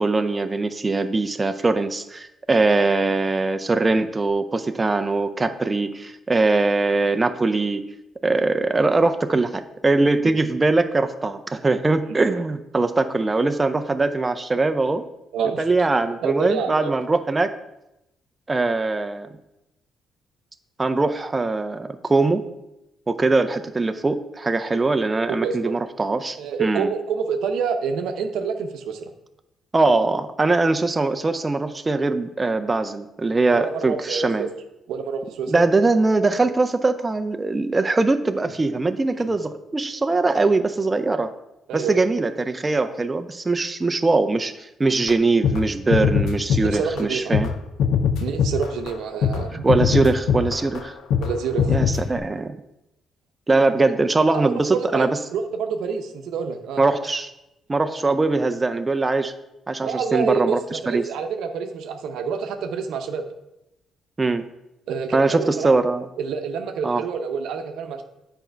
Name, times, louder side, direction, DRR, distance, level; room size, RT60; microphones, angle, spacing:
voice 1, 0.0-7.8 8.2-15.0 15.6-17.5 18.5-19.3 20.8-22.4 23.1-26.9 29.7-34.5 35.5-41.3 41.7-47.5 49.6-51.0 51.7-52.6 53.5-55.2 56.8-57.3 57.7-59.3 59.7-61.0 64.2-64.4 65.1-66.1 66.8-67.0, right 3 dB, 25° right, 8 dB, 0.4 m, -21 dB
voice 2, 15.3-15.6 16.2-16.9 24.7-24.8 25.3-25.7 26.4-29.1 33.5-34.5 34.9-35.7 39.1-39.3 41.7-42.0 46.6-47.2 48.2-49.7 51.2-51.8 54.3-56.8 59.8-63.2 64.9-65.7 66.2-68.0, right 6 dB, 85° right, 6 dB, 0.7 m, -27 dB
sound 1, 45.1-45.2 45.4-45.6 45.9-47.0 47.3-47.5 47.8-48.9 49.2-49.4 49.7-50.8 51.1-51.3 51.6-52.2, left 7 dB, 85° left, 0.5 m, -21 dB
7.8 x 4.4 x 4.5 m, 0.90 s
cardioid pair, 90°, 0 cm